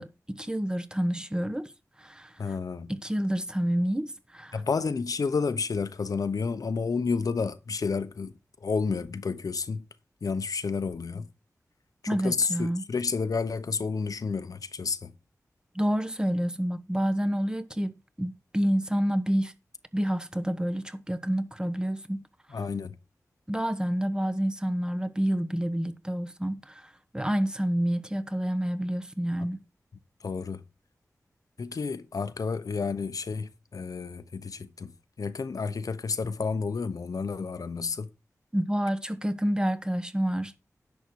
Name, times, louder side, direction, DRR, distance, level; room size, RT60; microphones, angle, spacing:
voice 1, 0.0-1.7 2.0-2.3 2.9-4.6 12.1-12.8 15.7-19.5 19.9-22.2 23.5-29.6 38.5-40.6, equal, 15° right, 1.2 m, -28 dB
voice 2, 2.4-2.9 4.5-8.3 8.6-9.9 10.2-11.3 12.0-15.1 22.5-23.0 30.2-30.6 31.6-34.9 35.2-38.1, left 5 dB, 75° left, 1.0 m, -30 dB
11.0 x 7.5 x 4.8 m
wide cardioid pair, 85°, 6 cm